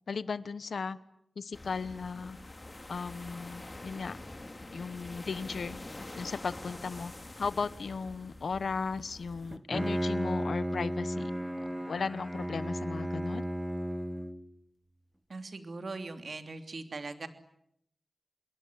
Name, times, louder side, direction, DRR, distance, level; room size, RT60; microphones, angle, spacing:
voice 1, 0.1-1.0 1.4-2.4 2.9-4.2 4.7-5.8 6.2-11.3 11.9-13.4, left 5 dB, 85° left, 16 dB, 1.0 m, -36 dB
sound 1, 1.5-9.6, left 2 dB, 30° left, 2.7 m, -46 dB
Bowed string instrument, 9.5-14.6, equal, 5° right, 1.4 m, -34 dB
voice 2, 15.3-17.3, right 3 dB, 65° right, 8 dB, 3.1 m, -40 dB
26.5 x 22.5 x 9.4 m, 0.74 s
wide cardioid pair, 80°, 0 cm